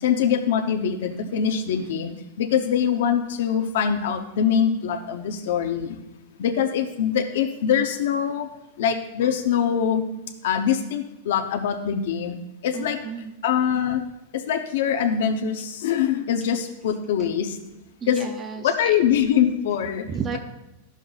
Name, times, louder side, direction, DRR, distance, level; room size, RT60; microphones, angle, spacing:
voice 1, 0.0-6.0 6.4-8.5 8.8-10.0 10.4-12.4 12.6-13.0 13.4-14.0 14.3-17.6 18.1-18.3 18.6-20.1, left 8 dB, 60° left, 4 dB, 0.6 m, -23 dB
voice 2, 12.7-13.3 18.0-18.9 20.1-20.4, right 6 dB, 15° right, 6 dB, 0.4 m, -33 dB
13.5 x 5.7 x 2.3 m, 0.93 s
supercardioid pair, 175°, 0 cm